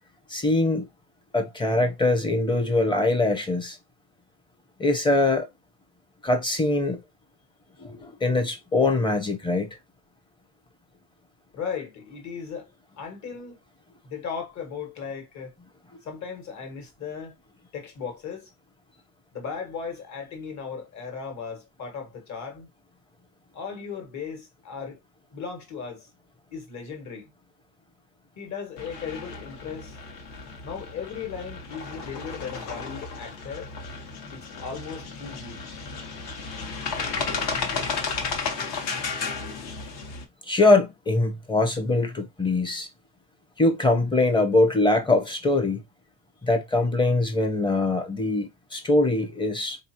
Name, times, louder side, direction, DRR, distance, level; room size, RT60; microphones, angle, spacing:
voice 1, 0.3-0.9 1.3-3.8 4.8-5.5 6.2-7.0 7.8-9.7 40.5-42.9 43.6-45.8 46.4-49.8, left 2 dB, 10° left, 0.8 m, -22 dB
voice 2, 11.5-12.7 13.0-13.6 14.0-15.5 16.0-17.3 17.7-18.5 19.3-22.7 23.5-25.0 25.3-26.1 26.5-27.3 28.4-30.0 30.6-33.7 34.3-35.6, left 6 dB, 40° left, 1.6 m, -36 dB
sound 1, 28.8-40.2, left 4 dB, 55° left, 1.3 m, -33 dB
4.2 x 2.7 x 2.9 m
cardioid pair, 125°, 45 cm